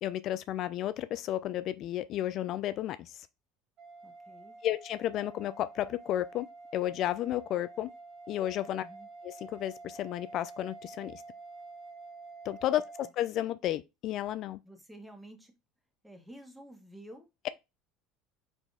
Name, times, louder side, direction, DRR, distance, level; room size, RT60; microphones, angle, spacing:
voice 1, 0.0-3.3 4.6-6.5 6.7-7.9 8.3-8.8 9.2-11.2 12.4-14.6, left 12 dB, 55° left, 0.3 m, -32 dB
sound 1, 3.8-13.1, right 3 dB, 50° right, 1.5 m, -49 dB
voice 2, 4.0-4.6 8.8-9.1 14.6-15.5 16.0-17.5, right 1 dB, 5° right, 1.5 m, -51 dB
4.3 x 2.8 x 3.5 m
hypercardioid pair, 85°, 0 cm